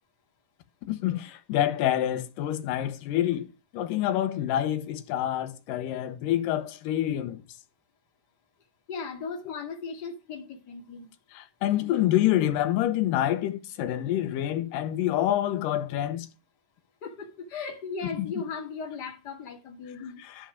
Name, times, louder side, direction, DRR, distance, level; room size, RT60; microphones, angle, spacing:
voice 1, 0.9-3.5 3.7-7.4 9.5-9.6 11.3-16.3 18.2-18.3 20.2-20.5, left 12 dB, 75° left, 2.5 m, -27 dB
voice 2, 8.9-11.1 17.0-20.2, left 5 dB, 35° left, 2.2 m, -37 dB
11.5 x 5.3 x 5.1 m
omnidirectional pair, 4.1 m